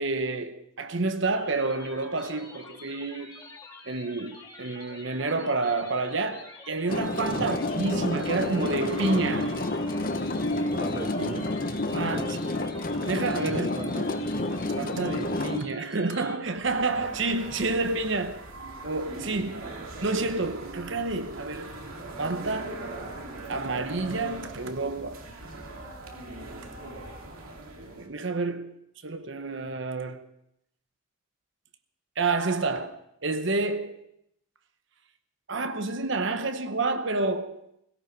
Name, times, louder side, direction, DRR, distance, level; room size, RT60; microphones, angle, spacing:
voice 1, 0.0-3.4 3.9-10.0 11.9-12.4 13.0-13.7 14.8-18.4 18.8-19.7 20.0-21.8 22.2-22.8 23.5-25.3 28.0-28.7 29.0-30.3 32.2-34.0 35.5-37.7, right 3 dB, 60° right, 1.0 m, -29 dB
sound 1, 1.3-16.4, left 3 dB, 20° left, 1.9 m, -47 dB
sound 2, 6.9-15.6, left 2 dB, 40° left, 0.9 m, -29 dB
voice 2, 10.8-12.2 13.4-14.2, right 1 dB, 30° right, 0.8 m, -38 dB
sound 3, 16.4-28.1, right 2 dB, 90° right, 2.6 m, -41 dB
18.0 x 16.5 x 4.7 m
head